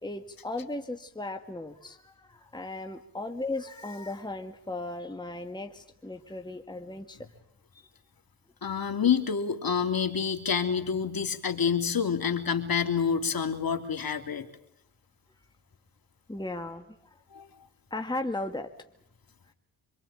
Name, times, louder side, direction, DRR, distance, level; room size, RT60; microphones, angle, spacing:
voice 1, 0.0-7.3 9.0-9.1 16.3-17.2 17.9-18.7, left 2 dB, 10° left, 5 dB, 2.3 m, -36 dB
voice 2, 8.6-14.5 17.3-17.5, left 6 dB, 45° left, 6 dB, 3.2 m, -27 dB
26.0 x 23.0 x 8.8 m, 0.73 s
supercardioid pair, 55°, 49 cm